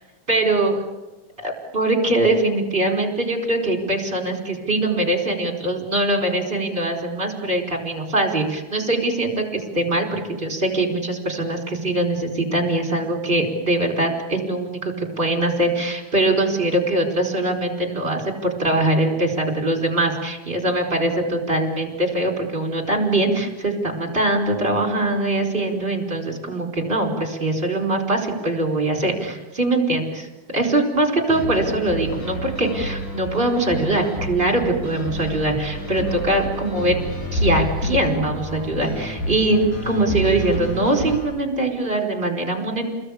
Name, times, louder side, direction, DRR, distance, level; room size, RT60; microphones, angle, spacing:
voice 1, 0.3-0.8 1.4-30.3 30.5-37.0 37.3-42.9, right 2 dB, 15° right, 3 dB, 4.8 m, -22 dB
sound 1, 31.3-41.2, equal, 70° left, 8.7 m, -29 dB
29.0 x 21.0 x 8.7 m, 1.1 s
omnidirectional pair, 3.7 m